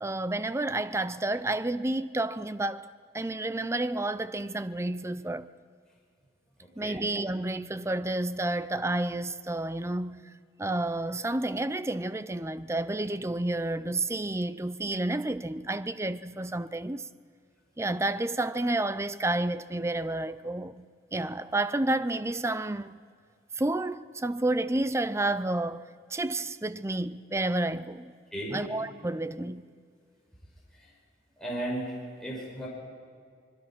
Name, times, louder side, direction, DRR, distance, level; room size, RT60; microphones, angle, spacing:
voice 1, 0.0-5.5 6.8-10.2 10.6-17.1 17.8-20.8 21.1-23.0 23.6-28.1 28.5-29.7, right 2 dB, 15° right, 0.5 m, -30 dB
voice 2, 31.4-31.9 32.2-32.7, right 1 dB, 5° left, 5.7 m, -34 dB
25.5 x 21.5 x 6.0 m
head